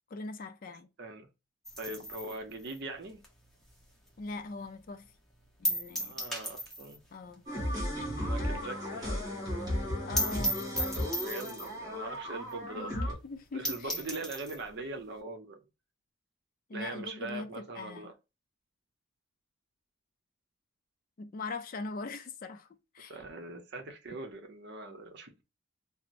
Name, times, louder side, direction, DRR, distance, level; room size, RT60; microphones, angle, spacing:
voice 1, 0.1-0.9 4.2-5.1 5.6-6.2 7.1-7.4 10.1-11.0 12.6-14.0 16.7-18.1 21.2-22.7 22.9-23.2, left 3 dB, 40° left, 0.4 m, -41 dB
sound 1, 1.7-4.3 4.6-4.7 5.1-5.2 5.6-7.1 7.3-7.4 7.7-7.8 8.2-8.3 8.6-8.7 8.9-9.0 9.3-9.4 9.8-9.9 10.2-11.8 12.5-12.6 12.9-13.0 13.4-13.5 13.7-14.6, equal, ahead, 0.8 m, -35 dB
voice 2, 1.8-3.2 6.1-7.0 8.2-9.4 11.2-13.1 13.5-15.6 16.7-18.1 23.1-25.4, right 2 dB, 55° right, 0.7 m, -41 dB
sound 2, 7.5-13.1, left 1 dB, 20° right, 1.5 m, -35 dB
4.2 x 2.0 x 2.5 m
head